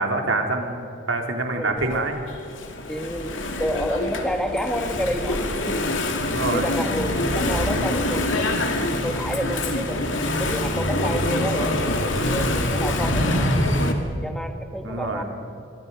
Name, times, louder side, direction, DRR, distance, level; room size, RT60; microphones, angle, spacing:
voice 1, 0.0-2.2 6.2-6.7 14.8-15.2, right 2 dB, 90° right, 3 dB, 3.0 m, -26 dB
voice 2, 1.5-2.1 2.9-5.9 6.4-8.6 9.0-13.6 14.2-15.2, equal, 5° left, 5 dB, 1.7 m, -30 dB
Engine / Mechanisms, 1.8-13.9, left 1 dB, 80° left, 2.6 m, -25 dB
27.0 x 23.5 x 5.3 m, 2.8 s
head